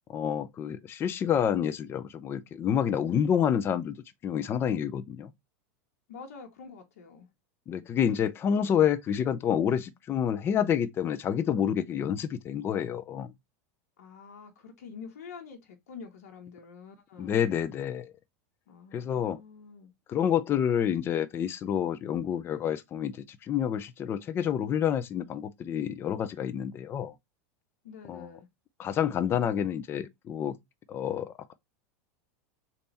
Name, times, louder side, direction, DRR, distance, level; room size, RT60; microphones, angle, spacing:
voice 1, 0.1-4.0 4.2-5.3 7.7-13.3 17.2-18.1 18.9-19.4 20.1-27.1 28.1-28.3 28.8-30.6 30.9-31.5, left 8 dB, 30° left, 0.5 m, -28 dB
voice 2, 6.1-7.3 14.0-17.4 18.7-19.9 27.8-28.5, left 5 dB, 85° left, 1.2 m, -47 dB
3.4 x 2.8 x 4.1 m
supercardioid pair, 130°, 8 cm